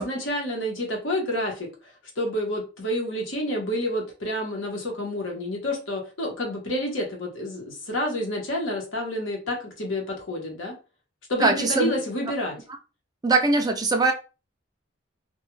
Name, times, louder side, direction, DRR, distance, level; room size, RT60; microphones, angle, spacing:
voice 1, 0.0-1.7 2.2-10.7 11.3-12.6, left 1 dB, 70° left, 1.0 m, -29 dB
voice 2, 11.4-11.9 13.2-14.1, right 3 dB, 20° right, 0.4 m, -21 dB
2.3 x 2.3 x 3.0 m
head